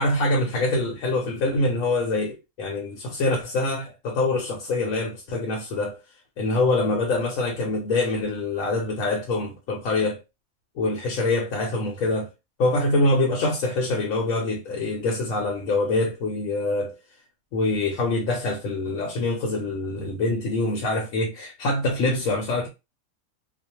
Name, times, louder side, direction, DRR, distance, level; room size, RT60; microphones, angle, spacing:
voice 1, 0.0-6.0 6.4-10.2 10.8-12.3 12.6-17.0 17.5-22.7, left 2 dB, 80° left, 1.1 m, -25 dB
2.4 x 2.0 x 2.8 m
omnidirectional pair, 1.4 m